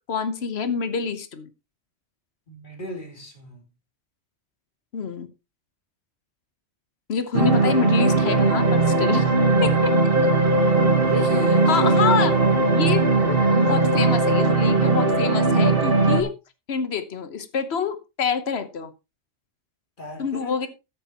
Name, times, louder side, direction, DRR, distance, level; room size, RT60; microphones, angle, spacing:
voice 1, 0.1-1.5 4.9-5.3 7.1-9.3 9.6-9.9 10.9-11.4 11.7-12.3 12.7-16.3 16.7-18.9 20.2-20.7, left 6 dB, 65° left, 1.4 m, -27 dB
voice 2, 2.5-3.6 11.0-12.4 20.0-20.7, equal, 45° left, 3.2 m, -34 dB
sound 1, 7.3-16.2, right 3 dB, 55° right, 1.9 m, -19 dB
13.0 x 9.4 x 3.0 m
omnidirectional pair, 1.2 m